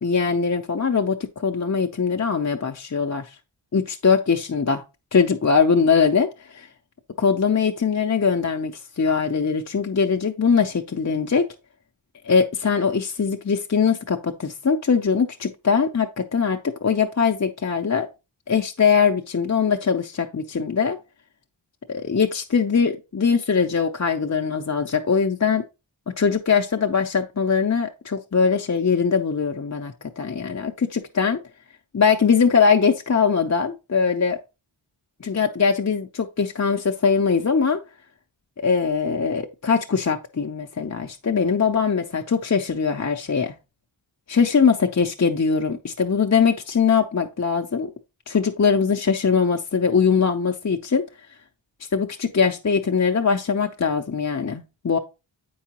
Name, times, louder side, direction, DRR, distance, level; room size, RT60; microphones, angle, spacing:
voice 1, 0.0-3.4 3.7-4.8 5.1-6.7 7.2-11.4 12.2-18.1 18.5-21.0 21.9-25.6 26.2-31.4 31.9-34.4 35.2-37.8 38.6-43.5 44.3-47.9 48.3-51.0 51.9-55.0, left 6 dB, 35° left, 0.5 m, -21 dB
8.1 x 4.7 x 2.9 m
wide cardioid pair, 50°, 47 cm